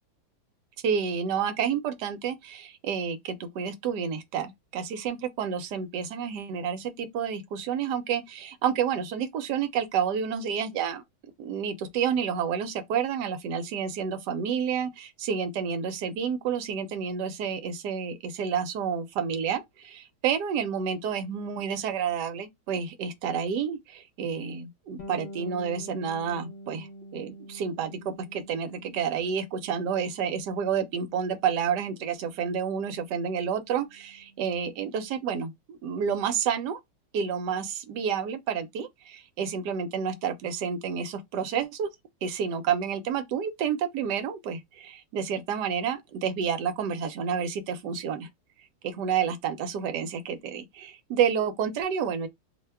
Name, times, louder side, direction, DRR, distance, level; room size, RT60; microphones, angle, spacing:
voice 1, 0.8-11.0 11.4-26.9 27.1-36.8 37.1-41.9 42.2-48.3 48.8-52.3, right 7 dB, 75° right, 1.1 m, -30 dB
Bass guitar, 25.0-34.6, equal, 50° left, 0.5 m, -47 dB
3.0 x 2.1 x 3.3 m
omnidirectional pair, 2.0 m